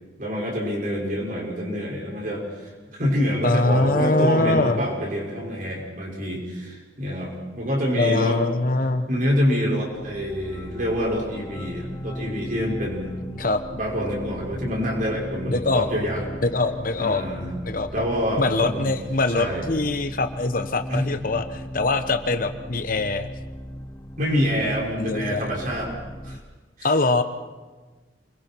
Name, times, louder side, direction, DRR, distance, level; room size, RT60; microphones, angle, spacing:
voice 1, 0.2-8.4 9.1-13.1 13.7-16.3 17.0-17.5 17.9-18.9 19.3-19.7 20.9-21.1 24.2-25.9 26.2-26.4 26.8-26.9, equal, 50° right, -3 dB, 6.0 m, -26 dB
voice 2, 3.4-4.8 7.9-9.1 13.4-13.6 15.5-15.9 16.4-17.2 17.6-17.9 18.4-23.3 25.0-25.5 26.8-27.2, left 2 dB, 50° left, 9 dB, 1.1 m, -23 dB
sound 1, 9.9-26.4, equal, 15° left, 0.9 m, -37 dB
29.0 x 22.0 x 4.7 m, 1.3 s
head